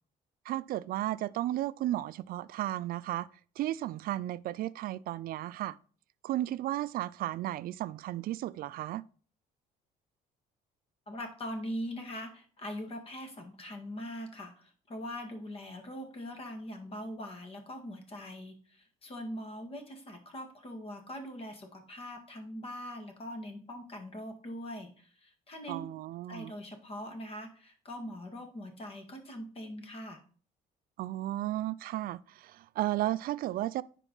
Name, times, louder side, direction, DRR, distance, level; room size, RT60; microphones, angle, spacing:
voice 1, 0.5-3.3 3.6-5.8 6.2-9.0 25.7-26.5 31.0-33.8, right 14 dB, 60° right, 0.4 m, -34 dB
voice 2, 11.1-25.9 26.3-30.2, equal, 35° left, 1.9 m, -42 dB
9.8 x 4.6 x 3.9 m
cardioid pair, 110°, 17 cm